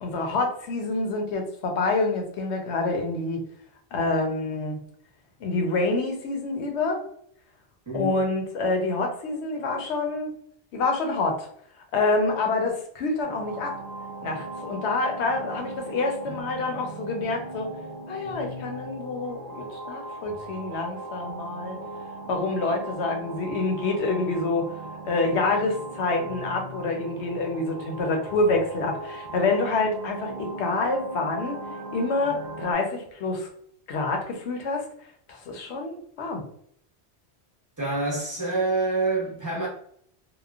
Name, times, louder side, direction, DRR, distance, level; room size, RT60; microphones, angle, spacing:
voice 1, 0.0-3.4 3.9-4.8 5.4-7.0 7.9-10.3 10.7-11.5 11.9-13.7 14.2-17.7 18.1-21.8 22.3-24.7 25.0-31.6 31.9-33.5 33.9-34.8 35.3-36.4, left 3 dB, 85° left, 0.9 m, -27 dB
sound 1, 13.2-32.7, right 2 dB, 55° right, 0.5 m, -38 dB
voice 2, 37.8-39.7, right 3 dB, 20° right, 0.8 m, -26 dB
3.0 x 2.1 x 2.4 m
omnidirectional pair, 1.1 m